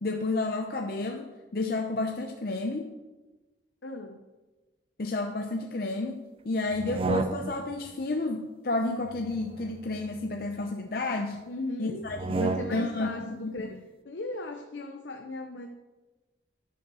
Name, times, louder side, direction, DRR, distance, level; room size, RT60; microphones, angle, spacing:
voice 1, 0.0-2.9 5.0-11.4 11.8-13.7, left 2 dB, 55° left, 3 dB, 0.6 m, -31 dB
voice 2, 3.8-4.2 11.4-12.1 12.4-13.8 14.0-15.7, left 2 dB, 85° left, 5 dB, 0.7 m, -37 dB
sound 1, 6.7-7.8 9.1-10.7 12.0-13.1, right 3 dB, 30° right, 0.4 m, -33 dB
11.0 x 5.4 x 6.2 m, 1.2 s
head